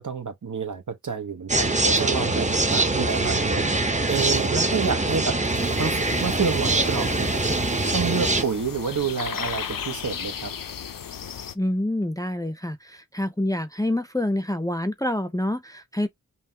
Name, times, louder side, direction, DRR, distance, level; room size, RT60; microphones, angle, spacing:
voice 1, 0.0-3.7 4.1-7.4 7.9-10.5, right 6 dB, 65° right, 1.0 m, -29 dB
sound 1, 1.5-8.4, right 2 dB, 20° right, 0.8 m, -23 dB
sound 2, 5.5-11.5, left 8 dB, 85° left, 0.5 m, -35 dB
voice 2, 11.6-16.1, left 1 dB, 10° left, 0.5 m, -27 dB
5.7 x 2.2 x 2.8 m
wide cardioid pair, 50°, 32 cm